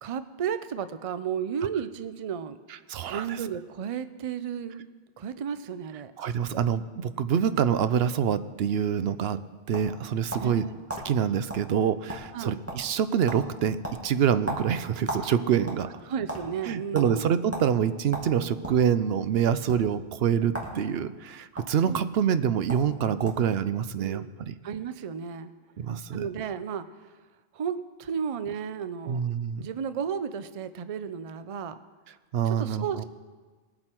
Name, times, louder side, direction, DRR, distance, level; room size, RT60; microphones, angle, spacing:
voice 1, 0.0-2.6 3.1-4.9 5.2-6.1 6.5-6.6 10.4-10.8 12.3-12.6 16.1-17.3 21.8-22.1 24.0-24.3 24.6-25.5 26.1-26.9 27.5-29.3 29.6-31.8 32.5-33.0, right 7 dB, 45° right, 12 dB, 0.5 m, -33 dB
voice 2, 2.9-3.4 6.2-9.4 9.7-10.7 11.0-15.9 16.7-24.5 25.8-26.3 29.1-29.7 32.3-33.0, right 8 dB, 80° right, 13 dB, 0.8 m, -26 dB
sound 1, 9.2-10.6 10.9-11.1 11.5-11.7 11.9-12.4 12.7-13.0 13.3-13.5 13.8-15.3 15.6-16.4 16.9-17.1 17.5-17.7 18.1-18.8 19.6-19.8 20.5-20.8 21.0-21.6 22.4-22.5 22.7-22.9 23.2-23.5, right 1 dB, 15° right, 1.9 m, -35 dB
20.0 x 7.7 x 4.5 m, 1.4 s
omnidirectional pair, 1.0 m